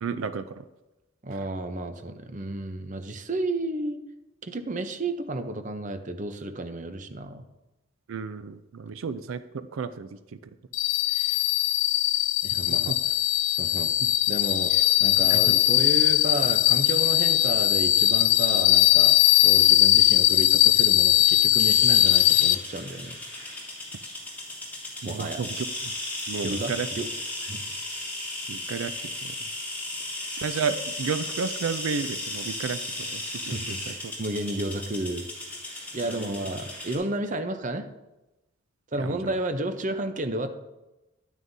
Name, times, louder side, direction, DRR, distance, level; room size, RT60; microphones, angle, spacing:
voice 1, 0.0-0.6 8.1-10.4 11.1-11.4 14.7-14.8 15.3-15.6 25.0-25.9 26.3-26.9 28.5-29.3 30.4-33.9 36.0-36.5 39.0-39.3, right 5 dB, 85° right, 13 dB, 0.4 m, -33 dB
voice 2, 1.2-4.0 4.4-7.4 12.4-13.0 13.5-13.9 14.3-14.7 15.0-23.2 25.0-25.4 26.4-27.1 27.4-27.6 33.5-35.3 35.9-37.9 38.9-40.5, right 2 dB, 40° right, 7 dB, 0.7 m, -32 dB
sound 1, 10.7-22.5, left 13 dB, 70° left, 0.4 m, -20 dB
sound 2, 21.6-37.0, left 1 dB, 10° left, 3.0 m, -36 dB
11.0 x 9.4 x 2.7 m, 1.0 s
head